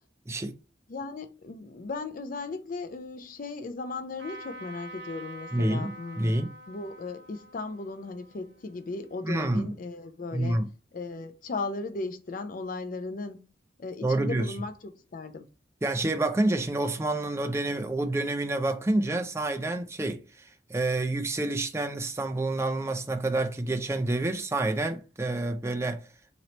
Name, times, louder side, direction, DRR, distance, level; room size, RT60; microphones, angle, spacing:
voice 1, 0.9-10.6 10.9-13.5 13.8-15.5, left 3 dB, 50° left, 0.4 m, -37 dB
Trumpet, 4.2-9.7, right 1 dB, 85° right, 0.8 m, -47 dB
voice 2, 5.5-6.5 9.2-9.7 10.3-10.7 14.0-14.5 15.8-26.0, right 2 dB, 15° right, 0.4 m, -28 dB
3.0 x 3.0 x 4.0 m
head